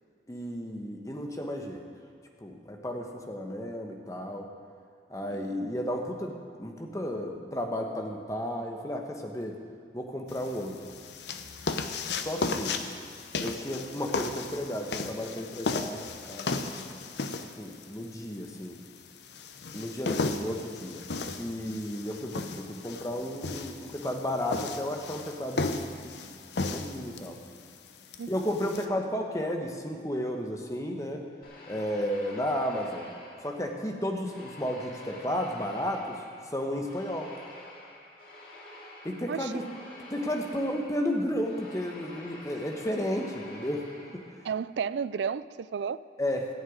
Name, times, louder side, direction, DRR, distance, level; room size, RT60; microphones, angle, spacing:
voice 1, 0.3-1.8 2.4-4.5 5.1-9.5 9.9-10.8 12.1-12.8 13.4-17.0 17.6-18.8 19.7-21.0 21.4-26.1 26.7-27.4 28.3-31.2 31.7-33.1 33.4-37.3 39.0-39.7 40.1-43.8 44.1-44.2 46.2-46.5, equal, 20° left, 3 dB, 1.1 m, -33 dB
sound 1, 10.3-28.8, left 3 dB, 80° left, 0.8 m, -35 dB
sound 2, 31.4-33.8 34.3-44.6, left 2 dB, 55° left, 2.3 m, -48 dB
voice 2, 39.3-39.6 44.4-46.0, right 6 dB, 90° right, 17 dB, 0.4 m, -33 dB
15.0 x 6.4 x 9.3 m, 2.1 s
head